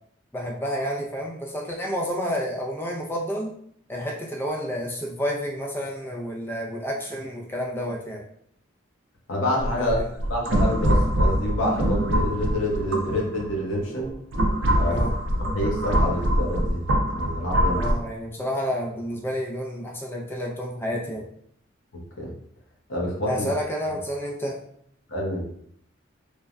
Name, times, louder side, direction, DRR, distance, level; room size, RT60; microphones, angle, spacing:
voice 1, 0.3-3.5 3.9-8.2 9.8-10.1 14.9-15.1 17.7-21.2 23.2-24.5, equal, 10° left, -1 dB, 0.4 m, -30 dB
voice 2, 9.3-10.0 10.3-14.1 14.7-15.0 15.4-16.8 17.1-17.9 22.2-22.3 22.9-23.5 25.1-25.4, left 1 dB, 75° left, -2 dB, 0.8 m, -27 dB
sound 1, 9.6-13.5 14.0-17.9, equal, 65° right, 0.4 m, -23 dB
3.2 x 2.1 x 2.4 m, 0.67 s
head